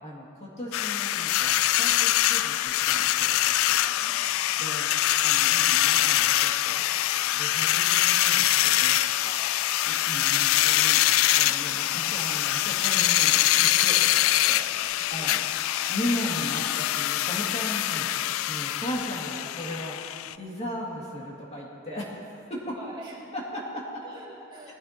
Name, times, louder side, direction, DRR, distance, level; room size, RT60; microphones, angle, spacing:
voice 1, 0.0-3.4 3.7-3.8 4.6-4.9 5.2-6.8 7.2-9.0 9.9-15.4 15.9-18.1 18.5-20.0 20.4-22.2 22.5-22.8 23.3-24.0, equal, 35° left, -4 dB, 2.3 m, -37 dB
sound 1, 0.7-20.3, left 14 dB, 90° left, 0.3 m, -24 dB
voice 2, 3.8-4.3 6.7-6.9 9.2-9.5 15.2-15.4 19.3-19.5 22.7-23.2 24.0-24.7, right 1 dB, 25° right, -5 dB, 2.4 m, -45 dB
21.0 x 14.5 x 2.9 m, 2.7 s
head